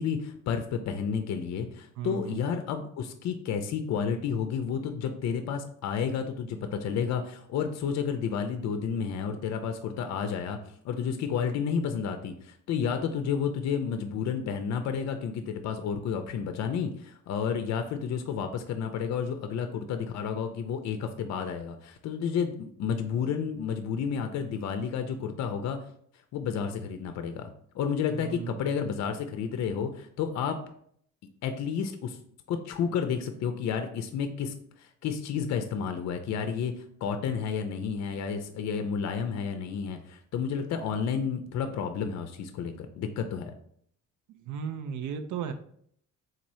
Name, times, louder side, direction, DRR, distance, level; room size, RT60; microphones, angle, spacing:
voice 1, 0.0-10.6 10.8-25.8 26.3-30.6 31.4-32.2 32.5-36.7 37.0-43.5, left 7 dB, 60° left, 7 dB, 0.5 m, -31 dB
voice 2, 2.0-2.5 28.1-28.7 44.4-45.5, right 8 dB, 80° right, 8 dB, 0.4 m, -35 dB
3.9 x 3.0 x 2.6 m, 0.64 s
cardioid pair, 90°, 30 cm